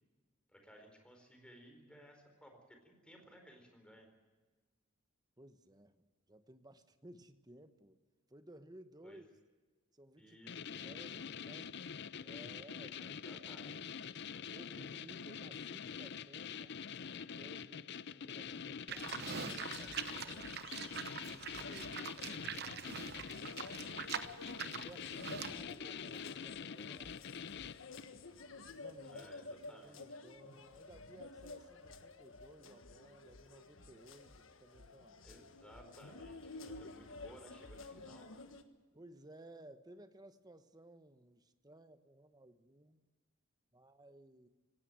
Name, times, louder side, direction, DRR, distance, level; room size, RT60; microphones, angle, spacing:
voice 1, 0.5-4.1 9.0-9.2 10.2-11.3 13.0-14.1 23.5-24.2 29.0-30.0 35.2-38.3, equal, 5° left, 3 dB, 4.4 m, -59 dB
voice 2, 5.4-8.0 8.3-9.3 9.9-10.4 10.8-11.8 12.2-13.2 14.5-16.8 17.2-20.7 21.1-22.7 24.2-27.4 28.7-35.4 36.6-36.9 38.1-38.2 38.9-43.1 43.7-44.5, right 1 dB, 20° right, 10 dB, 1.1 m, -58 dB
sound 1, 10.5-28.2, left 7 dB, 60° left, 0.6 m, -46 dB
Livestock farm animals working animals, 18.9-25.6, right 7 dB, 55° right, 1.0 m, -44 dB
sound 2, 19.0-38.6, left 3 dB, 80° left, 1.5 m, -52 dB
19.0 x 18.0 x 9.2 m, 1.3 s
head